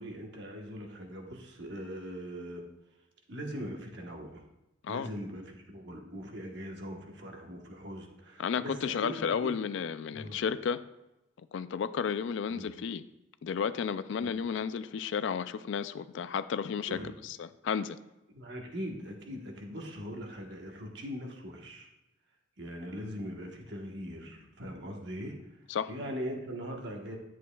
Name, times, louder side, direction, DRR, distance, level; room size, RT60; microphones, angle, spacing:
voice 1, 0.0-2.7 3.3-4.5 4.9-9.6 10.1-10.4 12.5-12.7 14.2-14.3 16.9-17.1 18.3-21.9 22.6-25.4 25.9-27.2, equal, 55° right, 1 dB, 1.2 m, -41 dB
voice 2, 8.4-10.8 11.5-13.0 13.4-17.0 17.2-18.0 25.7-25.9, left 6 dB, 65° left, 14 dB, 0.3 m, -32 dB
11.0 x 7.5 x 2.3 m, 0.96 s
head